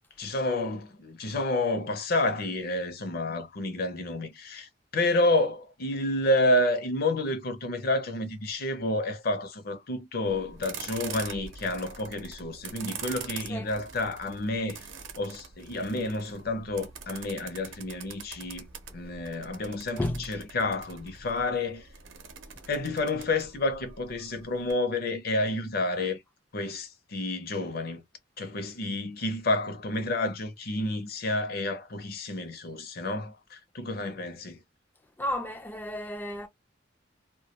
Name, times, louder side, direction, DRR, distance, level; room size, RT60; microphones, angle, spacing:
voice 1, 0.2-14.9 15.2-18.6 18.9-21.9 22.7-26.2 26.5-28.0 28.4-34.6, left 2 dB, 55° left, 0.6 m, -30 dB
sound 1, 10.2-24.7, right 6 dB, 85° right, 0.7 m, -44 dB
voice 2, 35.2-36.5, left 1 dB, 10° left, 0.3 m, -32 dB
2.2 x 2.2 x 2.8 m
head